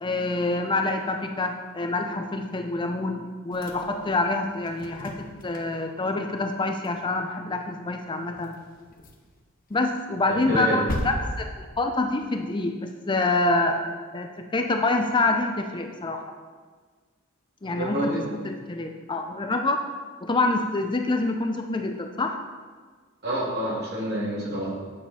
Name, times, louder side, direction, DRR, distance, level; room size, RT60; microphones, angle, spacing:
voice 1, 0.0-5.2 5.4-8.6 9.7-16.2 17.6-19.8 20.2-22.4, left 2 dB, 25° left, 4 dB, 0.5 m, -26 dB
sound 1, 3.5-6.1 6.3-6.6 6.8-6.9 7.2-7.3 8.0-9.4 9.8-12.2, left 1 dB, 45° left, 1.0 m, -37 dB
voice 2, 10.3-10.8 17.6-18.2 23.2-24.7, equal, 50° right, -5 dB, 2.6 m, -28 dB
8.4 x 7.1 x 4.3 m, 1.5 s
head